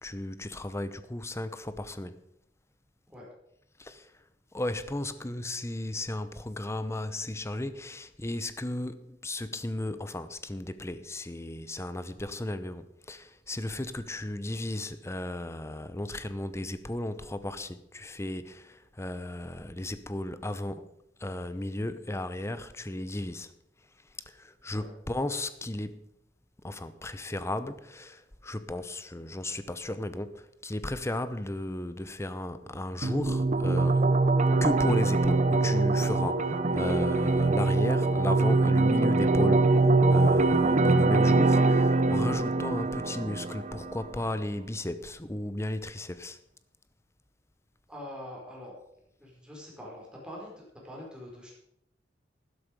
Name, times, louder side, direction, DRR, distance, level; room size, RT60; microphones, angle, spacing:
voice 1, 0.0-2.2 3.8-4.1 4.5-20.9 21.2-23.5 24.3-26.1 26.6-34.1 34.6-46.4, left 1 dB, 15° left, 0.7 m, -35 dB
sound 1, 33.0-44.0, right 3 dB, 40° right, 0.7 m, -23 dB
voice 2, 47.9-48.8 49.2-51.5, left 1 dB, 5° right, 4.6 m, -44 dB
12.0 x 11.5 x 5.2 m
head